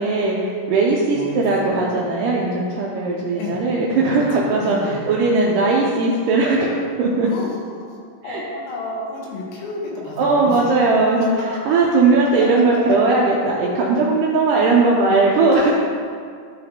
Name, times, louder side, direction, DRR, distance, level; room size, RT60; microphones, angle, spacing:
voice 1, 0.0-7.3 8.2-8.4 10.2-11.3 11.7-15.7, right 3 dB, 80° right, -3 dB, 2.1 m, -18 dB
voice 2, 4.1-5.2 7.2-10.7 12.5-12.8, left 2 dB, 80° left, -3 dB, 2.8 m, -32 dB
11.5 x 4.1 x 2.8 m, 2.2 s
omnidirectional pair, 4.2 m